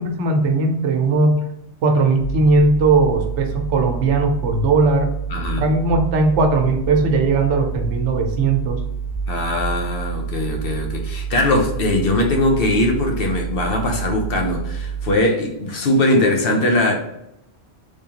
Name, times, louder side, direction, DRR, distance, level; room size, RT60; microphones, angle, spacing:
voice 1, 0.0-1.4 1.8-5.1 5.6-8.8, right 3 dB, 85° right, 4 dB, 1.0 m, -18 dB
sound 1, 2.2-15.1, right 7 dB, 45° right, 0.4 m, -28 dB
voice 2, 5.3-5.7 9.3-16.9, left 1 dB, 60° left, 2 dB, 0.9 m, -20 dB
3.5 x 3.3 x 2.8 m, 0.82 s
omnidirectional pair, 1.2 m